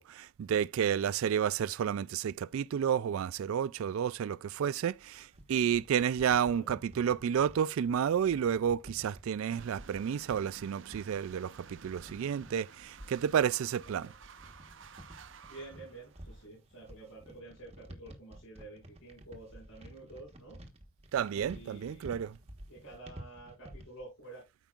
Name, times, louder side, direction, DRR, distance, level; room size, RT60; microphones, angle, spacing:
voice 1, 0.0-14.1 21.1-22.4, right 8 dB, 80° right, 0.3 m, -31 dB
sound 1, 4.9-24.0, right 1 dB, 30° right, 1.3 m, -52 dB
voice 2, 6.4-6.7 13.8-14.1 15.5-20.6 21.3-22.1 22.7-24.4, right 2 dB, 65° left, 5.9 m, -50 dB
sound 2, 9.5-16.5, right 6 dB, 60° right, 0.7 m, -54 dB
13.5 x 5.3 x 2.4 m
head